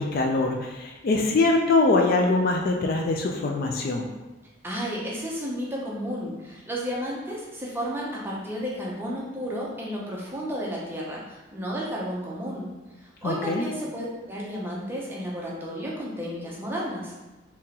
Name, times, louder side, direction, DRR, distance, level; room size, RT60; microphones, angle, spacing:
voice 1, 0.0-4.1 13.2-13.7, left 3 dB, 45° left, 1 dB, 0.3 m, -23 dB
voice 2, 4.6-12.7 13.0-17.1, equal, 10° right, -5 dB, 0.6 m, -32 dB
3.6 x 2.9 x 2.8 m, 1.1 s
head